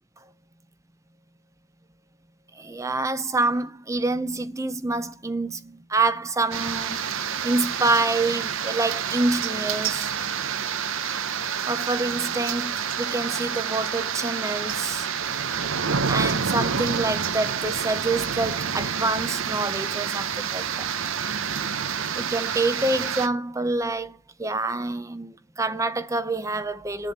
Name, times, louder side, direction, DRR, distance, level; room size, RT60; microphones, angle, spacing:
voice 1, 2.5-7.0 7.4-10.1 11.6-15.1 16.1-20.9 22.2-27.1, right 2 dB, 15° right, 0.6 m, -27 dB
sound 1, 6.5-23.3, right 7 dB, 65° right, 0.8 m, -28 dB
8.8 x 7.5 x 8.7 m
head